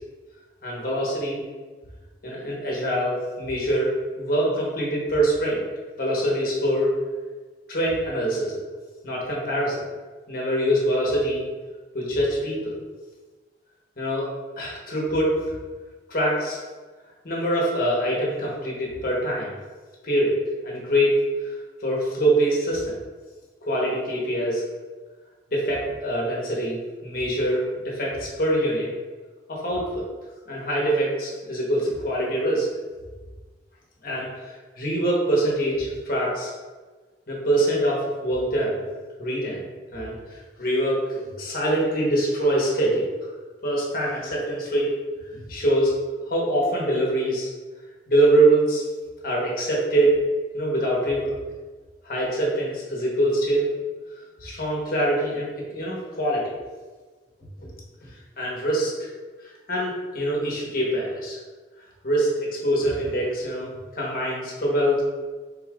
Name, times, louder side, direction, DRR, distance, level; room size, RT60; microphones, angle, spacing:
voice 1, 0.6-1.4 2.2-5.6 6.0-6.9 7.7-8.6 9.0-9.8 10.3-11.4 11.9-12.8 14.0-15.4 16.1-16.6 17.2-19.5 20.0-23.0 23.6-24.6 25.5-28.9 29.5-30.1 30.5-32.7 34.0-36.5 37.3-38.8 39.2-39.6 39.9-43.1 43.6-44.9 45.3-45.9 46.2-47.5 48.1-48.8 49.2-50.2 50.5-51.3 52.0-53.7 54.4-56.5 57.6-57.7 58.4-58.9 59.7-61.4 62.0-65.0, right 1 dB, 55° left, -4 dB, 1.2 m, -24 dB
5.4 x 3.6 x 2.5 m, 1.4 s
head